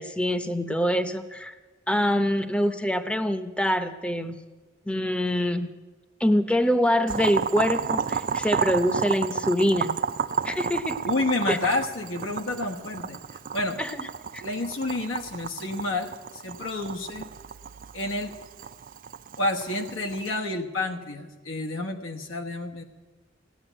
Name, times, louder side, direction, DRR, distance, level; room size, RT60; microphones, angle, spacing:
voice 1, 0.0-1.5 1.9-4.4 4.9-5.7 6.2-10.0 10.4-11.0 11.5-11.6 13.8-14.1 14.3-14.4, equal, 5° left, 8 dB, 0.6 m, -25 dB
Boiling, 7.1-20.3, right 6 dB, 45° right, 0.4 m, -32 dB
voice 2, 11.0-13.8 14.4-17.3 17.9-18.3 19.4-22.8, left 2 dB, 85° left, 2 dB, 1.2 m, -29 dB
16.5 x 8.3 x 10.0 m, 1.3 s
head